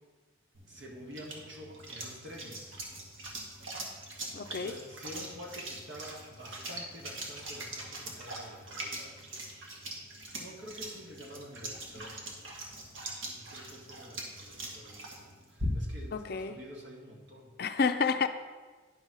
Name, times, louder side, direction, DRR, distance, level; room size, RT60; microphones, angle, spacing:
sound 1, 0.5-16.1, right 1 dB, 80° right, 1.6 m, -42 dB
voice 1, 0.7-2.8 4.5-10.0 10.4-12.5 13.3-17.5, equal, 65° right, -1 dB, 1.8 m, -48 dB
voice 2, 4.3-4.7 16.1-16.6 17.6-18.3, left 5 dB, 50° left, 9 dB, 0.4 m, -29 dB
10.5 x 4.0 x 6.1 m, 1.4 s
head